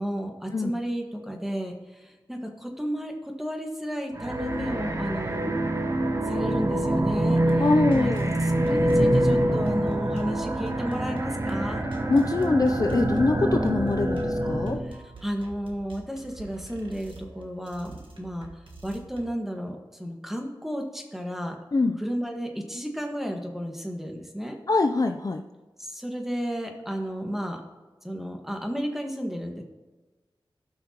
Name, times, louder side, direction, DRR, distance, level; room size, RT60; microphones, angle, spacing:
voice 1, 0.0-5.6 6.2-8.1 8.4-11.8 14.8-18.5 18.8-21.6 22.0-24.6 25.8-27.6 28.0-29.6, equal, 5° right, 2 dB, 1.5 m, -33 dB
sound 1, 4.1-14.9, right 1 dB, 35° right, 1.0 m, -25 dB
sound 2, 7.2-19.3, right 3 dB, 65° right, 1.5 m, -46 dB
voice 2, 7.6-8.3 12.1-14.8 21.7-22.0 24.7-25.4, left 3 dB, 40° left, 6 dB, 0.5 m, -23 dB
17.0 x 5.7 x 2.9 m, 1.2 s
wide cardioid pair, 70°, 9 cm